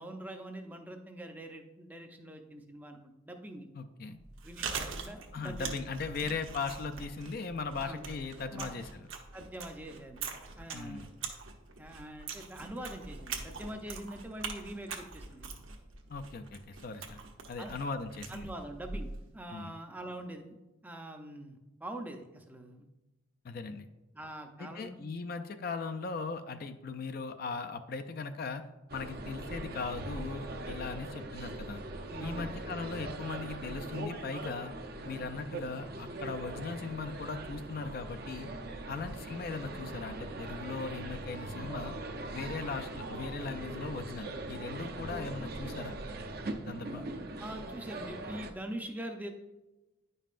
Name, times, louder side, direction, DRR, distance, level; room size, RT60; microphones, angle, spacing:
voice 1, 0.0-3.7 4.4-5.8 7.8-8.0 8.5-8.8 9.3-10.3 10.6-11.1 11.8-15.6 17.6-17.7 18.3-20.6 20.8-22.9 24.1-25.0 32.1-32.5 35.0-35.1 38.8-38.9 42.4-42.5 46.9-47.0 47.4-49.3, right 1 dB, 10° right, 4 dB, 0.5 m, -44 dB
voice 2, 3.7-4.2 5.3-9.1 10.7-11.1 16.1-17.2 17.5-18.5 19.5-19.7 23.4-23.9 24.6-28.6 28.9-31.8 32.2-34.7 35.0-38.5 38.9-41.9 42.3-46.0 46.7-47.0, left 4 dB, 45° left, 8 dB, 0.4 m, -39 dB
Chewing mastication, 4.2-19.3, right 5 dB, 75° right, 0.9 m, -43 dB
sound 1, 28.9-48.5, right 2 dB, 50° right, 0.6 m, -41 dB
9.9 x 5.4 x 2.5 m, 1.0 s
head